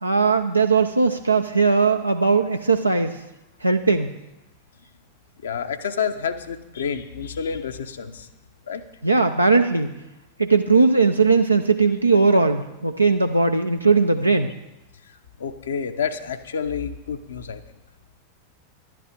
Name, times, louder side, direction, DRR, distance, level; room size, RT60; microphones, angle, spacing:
voice 1, 0.0-3.2 3.6-4.1 9.0-9.9 10.4-14.5, right 4 dB, 85° right, 5 dB, 0.5 m, -19 dB
voice 2, 5.4-8.3 8.7-8.8 15.4-17.6, left 6 dB, 65° left, 8 dB, 0.8 m, -29 dB
11.5 x 11.0 x 5.1 m, 0.96 s
figure-of-eight pair, 90°, 0 cm